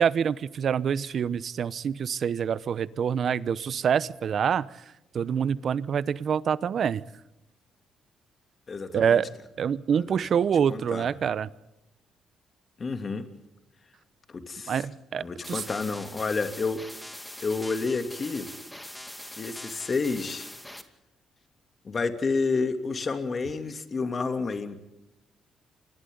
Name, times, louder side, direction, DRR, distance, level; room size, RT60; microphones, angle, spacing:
voice 1, 0.0-4.7 5.1-7.0 8.9-9.3 9.6-11.5 14.7-15.6, right 7 dB, 55° right, 17 dB, 0.9 m, -26 dB
voice 2, 8.7-9.2 9.9-10.2 10.7-11.1 12.8-13.3 14.3-14.8 15.2-16.8 17.4-18.5 19.4-20.5 21.8-24.7, left 4 dB, 40° left, 6 dB, 3.0 m, -30 dB
sound 1, 15.4-20.8, left 1 dB, 5° left, 2.3 m, -42 dB
30.0 x 25.0 x 4.0 m, 0.93 s
cardioid pair, 90°, 0 cm